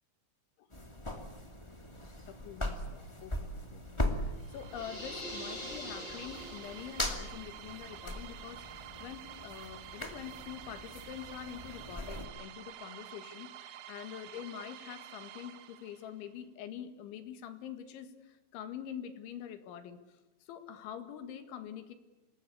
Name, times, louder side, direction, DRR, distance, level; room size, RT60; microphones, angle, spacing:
sound 1, 0.7-12.3, left 1 dB, 50° left, 0.3 m, -40 dB
voice 1, 2.3-21.9, left 9 dB, 85° left, 9 dB, 4.1 m, -46 dB
sound 2, 4.4-16.2, right 12 dB, 75° right, 3.2 m, -49 dB
sound 3, 4.7-7.3, left 1 dB, 25° left, 6.9 m, -44 dB
26.5 x 21.0 x 8.5 m, 1.2 s
omnidirectional pair, 5.3 m